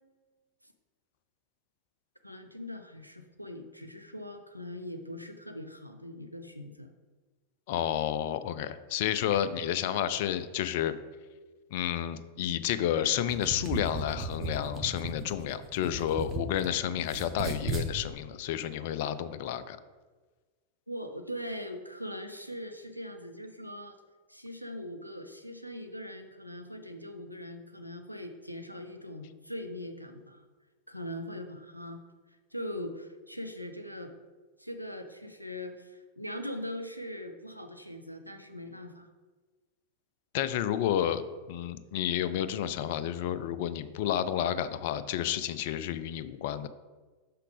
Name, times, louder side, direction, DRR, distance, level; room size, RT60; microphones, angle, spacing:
voice 1, 2.2-6.9 20.9-24.0 24.3-30.4 30.9-32.0 32.5-34.1 34.6-39.1, left 1 dB, 90° right, 6 dB, 0.5 m, -41 dB
voice 2, 7.7-10.9 11.7-19.8 40.3-41.2 41.5-46.7, left 10 dB, 50° left, 13 dB, 0.4 m, -30 dB
sound 1, 13.1-16.7 17.0-17.9, right 2 dB, 25° right, 1.1 m, -35 dB
6.1 x 5.7 x 3.5 m, 1.3 s
figure-of-eight pair, 90°, 0 cm